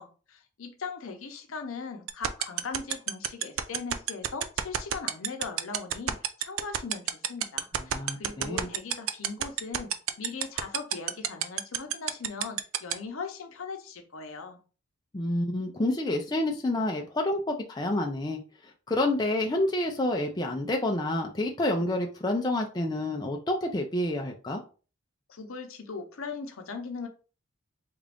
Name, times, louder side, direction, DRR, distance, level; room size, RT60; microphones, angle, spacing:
voice 1, 0.0-14.6 25.3-27.1, left 4 dB, 70° left, 0.7 m, -39 dB
sound 1, 2.1-12.9, right 11 dB, 70° right, 0.4 m, -26 dB
voice 2, 7.7-8.7 15.1-18.4 18.9-24.6, left 1 dB, 20° left, 0.4 m, -28 dB
3.7 x 2.5 x 3.4 m
head